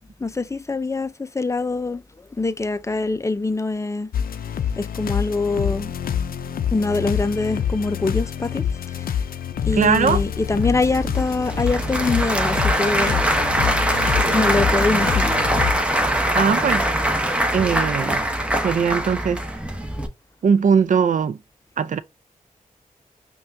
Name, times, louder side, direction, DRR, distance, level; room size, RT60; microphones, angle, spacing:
voice 1, 0.2-2.0 2.3-4.1 4.8-5.9 6.7-9.1 9.7-13.3 14.3-15.3, left 3 dB, 20° left, 0.5 m, -24 dB
sound 1, 4.1-15.8, left 8 dB, 75° left, 0.5 m, -26 dB
voice 2, 9.7-10.2 16.3-16.9 17.5-18.3 18.6-19.4 20.4-21.4 21.8-22.0, right 6 dB, 60° right, 0.4 m, -20 dB
Applause / Crowd, 10.5-20.1, right 1 dB, 10° right, 0.8 m, -22 dB
5.4 x 2.3 x 2.5 m
cardioid pair, 50°, 15 cm